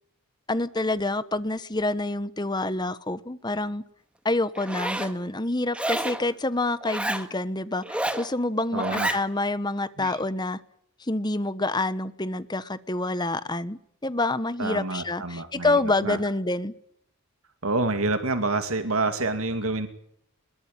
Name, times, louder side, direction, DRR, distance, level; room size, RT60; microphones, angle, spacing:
voice 1, 0.5-3.8 4.2-10.6 11.0-16.7, left 2 dB, 20° left, 14 dB, 1.1 m, -27 dB
Zipper (clothing), 4.5-5.1 5.7-6.2 6.8-7.3 7.8-8.3 8.7-9.2, right 1 dB, 5° right, 1.7 m, -29 dB
voice 2, 8.7-9.1 10.0-10.2 14.6-16.2 17.6-19.9, right 2 dB, 70° right, 7 dB, 2.6 m, -27 dB
24.5 x 22.0 x 9.0 m, 0.69 s
head